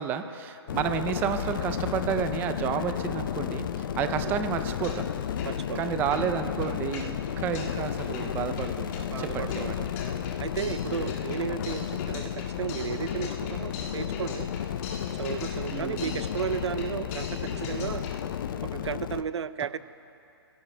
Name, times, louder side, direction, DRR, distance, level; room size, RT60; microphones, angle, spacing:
voice 1, 0.0-5.1 5.7-9.8 10.8-11.0 15.7-16.3, right 9 dB, 15° right, 9 dB, 0.5 m, -31 dB
sound 1, 0.7-19.2, left 9 dB, 50° left, 0.6 m, -32 dB
sound 2, 4.8-5.1 5.4-18.2, left 4 dB, 30° left, 2.0 m, -43 dB
voice 2, 5.4-5.8 9.1-9.9 10.4-14.5 15.2-18.0 18.7-19.8, right 8 dB, 80° right, 15 dB, 0.5 m, -34 dB
27.0 x 17.0 x 2.2 m, 2.8 s
hypercardioid pair, 155°, 14 cm